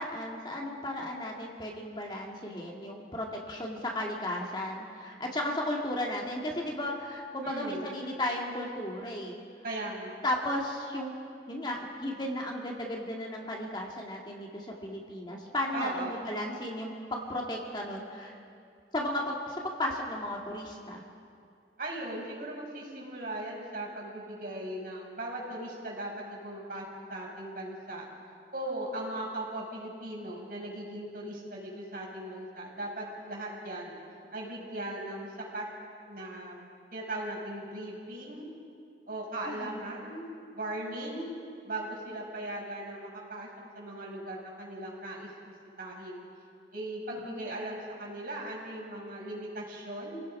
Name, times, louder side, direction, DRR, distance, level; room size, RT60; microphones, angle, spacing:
voice 1, 0.0-9.4 10.2-11.1 11.5-18.4 18.9-21.0 39.5-39.8 47.2-47.4, left 1 dB, 25° left, -1 dB, 2.1 m, -35 dB
voice 2, 7.4-8.0 9.6-10.3 15.7-16.3 21.8-28.1 28.5-34.0 34.3-35.7 36.1-38.5 39.1-40.3 40.5-41.3 41.6-43.5 43.7-45.3 45.8-46.2 46.7-50.2, right 1 dB, 55° right, -3 dB, 6.0 m, -38 dB
28.5 x 17.5 x 5.5 m, 2.4 s
head